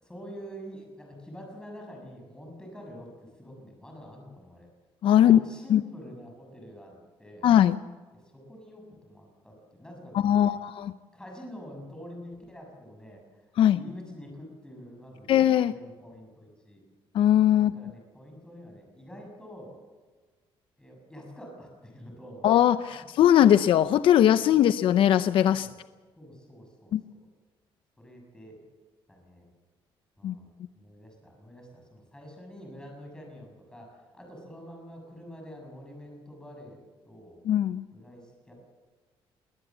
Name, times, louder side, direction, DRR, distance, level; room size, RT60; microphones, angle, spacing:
voice 1, 0.0-4.7 5.1-7.5 8.1-10.6 11.1-13.4 13.7-15.3 15.6-16.8 17.5-19.8 20.8-22.5 22.9-23.1 24.5-24.7 25.6-25.8 26.2-26.9 28.0-28.6 29.1-29.5 30.2-30.5 30.7-36.8 37.1-37.4 37.9-38.5, equal, 10° left, 1 dB, 6.7 m, -46 dB
voice 2, 5.0-5.4 5.7-5.8 7.4-7.8 10.1-10.9 13.6-13.8 15.3-15.7 17.1-17.7 22.4-25.7 26.9-27.0 30.2-30.4 37.5-37.8, left 11 dB, 65° left, 13 dB, 0.6 m, -20 dB
21.5 x 19.0 x 7.2 m, 1.4 s
cardioid pair, 145°, 10 cm